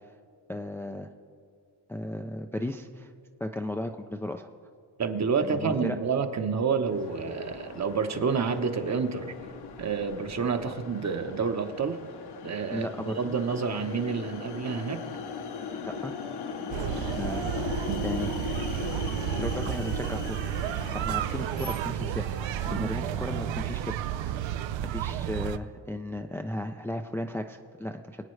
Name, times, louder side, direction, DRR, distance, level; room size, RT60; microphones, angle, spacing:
voice 1, 0.5-1.1 1.9-3.1 3.4-4.5 5.4-6.0 12.7-13.3 15.8-16.1 16.7-18.3 19.0-20.4 20.9-22.3 22.6-24.5 24.9-28.2, left 1 dB, 5° left, 4 dB, 0.4 m, -35 dB
voice 2, 5.0-9.3 9.8-12.0 12.4-15.0 22.6-22.9, right 5 dB, 35° right, 7 dB, 1.0 m, -29 dB
sound 1, 6.8-24.3, left 5 dB, 60° left, 1.0 m, -39 dB
sound 2, 16.7-25.6, right 11 dB, 85° right, 0.6 m, -32 dB
24.5 x 9.0 x 3.2 m, 2.2 s
cardioid pair, 115°, 45 cm